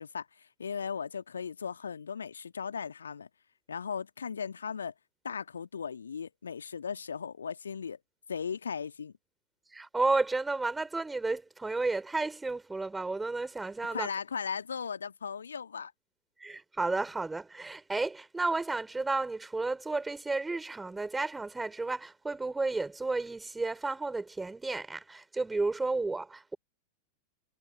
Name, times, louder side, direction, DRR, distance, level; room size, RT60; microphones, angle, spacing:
voice 1, 0.0-3.3 3.7-4.9 5.2-8.0 8.3-9.1 13.9-15.9, left 6 dB, 70° left, 1.8 m, -37 dB
voice 2, 9.7-14.1 16.4-26.6, right 3 dB, 10° right, 5.0 m, -32 dB
figure-of-eight pair, 90°, 0 cm